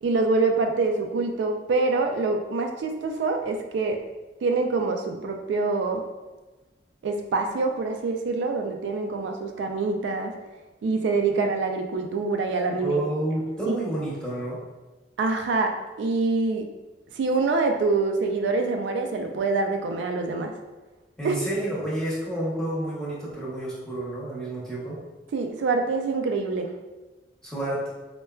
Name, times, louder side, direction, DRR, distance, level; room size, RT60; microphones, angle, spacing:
voice 1, 0.0-4.0 4.4-6.0 7.0-10.3 10.8-13.0 13.7-13.8 15.2-16.7 17.1-20.5 21.2-21.4 25.3-26.7, right 3 dB, 85° right, 4 dB, 0.3 m, -25 dB
voice 2, 12.8-14.6 21.2-25.0 27.4-27.9, right 1 dB, 5° left, -8 dB, 0.8 m, -29 dB
4.3 x 2.2 x 2.2 m, 1.2 s
head